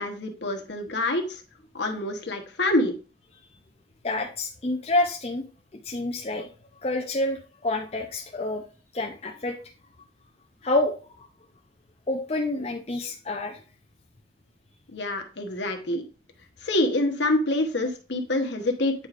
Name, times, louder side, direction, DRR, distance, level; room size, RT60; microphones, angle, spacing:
voice 1, 0.0-1.4 1.7-2.9 14.9-16.1 16.6-18.9, left 1 dB, 65° left, 4 dB, 1.1 m, -26 dB
voice 2, 4.0-5.4 5.8-6.5 6.8-8.6 8.9-9.6 10.6-11.3 12.1-13.6, left 2 dB, 30° left, 1 dB, 0.6 m, -28 dB
8.8 x 4.9 x 2.5 m, 0.37 s
head